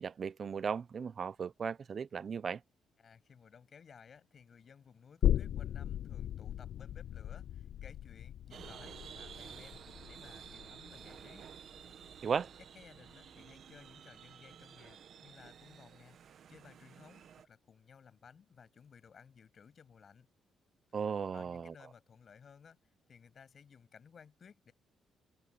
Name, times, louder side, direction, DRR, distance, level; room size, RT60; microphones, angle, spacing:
voice 1, 0.0-2.6 12.2-12.5 20.9-21.7, right 6 dB, 45° right, 0.7 m, -36 dB
voice 2, 3.0-11.5 12.6-16.2 16.5-20.3 21.3-24.7, left 6 dB, 50° left, 7.3 m, -58 dB
sound 1, 5.2-12.5 12.9-13.0, left 11 dB, 70° left, 0.3 m, -37 dB
sound 2, 8.5-17.5, right 8 dB, 60° right, 1.6 m, -52 dB
cardioid pair, 90°, 0 cm